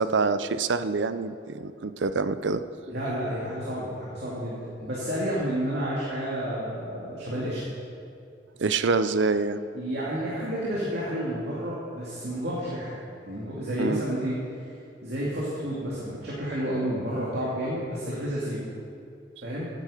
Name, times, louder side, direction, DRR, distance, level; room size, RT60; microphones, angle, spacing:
voice 1, 0.0-2.6 8.6-9.6 13.8-14.0, right 4 dB, 85° right, 12 dB, 0.6 m, -26 dB
voice 2, 2.9-7.6 9.7-13.0 13.3-14.4 15.0-18.7 19.4-19.7, equal, 65° right, -6 dB, 2.4 m, -30 dB
15.5 x 9.3 x 5.0 m, 2.5 s
head